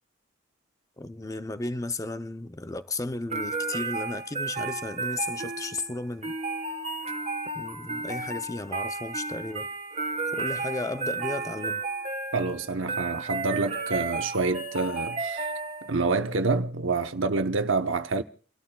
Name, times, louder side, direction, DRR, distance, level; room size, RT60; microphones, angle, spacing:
voice 1, 1.0-6.4 7.5-9.7 10.3-11.8, left 2 dB, 15° left, 0.6 m, -34 dB
sound 1, 3.3-16.1, right 3 dB, 35° right, 1.5 m, -33 dB
voice 2, 12.3-15.5 15.8-18.2, right 3 dB, 80° right, 0.9 m, -27 dB
29.5 x 13.0 x 2.3 m
head